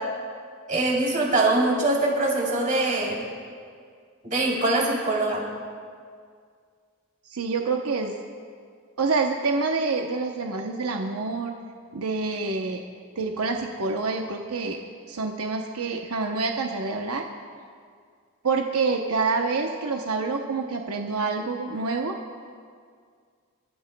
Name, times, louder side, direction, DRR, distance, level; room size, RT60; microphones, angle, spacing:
voice 1, 0.7-3.2 4.2-5.4, right 2 dB, 35° right, -3 dB, 3.3 m, -23 dB
voice 2, 7.3-8.1 9.0-11.5 11.9-12.8 13.2-14.8 15.1-17.2 18.4-22.1, right 4 dB, 90° right, 3 dB, 0.8 m, -27 dB
28.5 x 13.0 x 2.2 m, 2.1 s
head